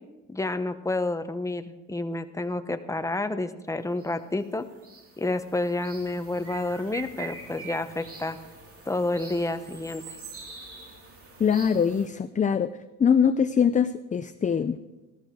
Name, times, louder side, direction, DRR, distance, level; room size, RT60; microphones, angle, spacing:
voice 1, 0.3-4.7 5.2-8.4 8.9-10.2, left 2 dB, 10° left, 8 dB, 0.9 m, -29 dB
sound 1, 4.0-4.2 4.4-12.1, right 4 dB, 50° right, 2.7 m, -45 dB
voice 2, 11.4-12.7 13.0-14.8, left 7 dB, 25° left, 11 dB, 0.5 m, -23 dB
14.5 x 13.0 x 4.7 m, 1.1 s
cardioid pair, 90°, 30 cm